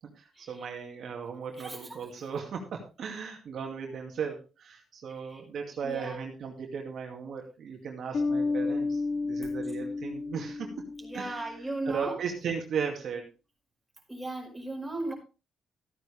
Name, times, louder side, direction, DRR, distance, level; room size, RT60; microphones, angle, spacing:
voice 1, 0.2-10.7 11.1-13.3, right 6 dB, 60° right, 2 dB, 2.3 m, -36 dB
voice 2, 1.6-1.9 5.3-5.4 5.8-6.2 11.0-12.1 14.1-15.1, right 2 dB, 5° right, 0 dB, 5.0 m, -36 dB
Bass guitar, 8.1-11.6, left 3 dB, 50° left, 1.3 m, -31 dB
14.0 x 9.4 x 3.5 m, 0.31 s
cardioid pair, 90°, 0 cm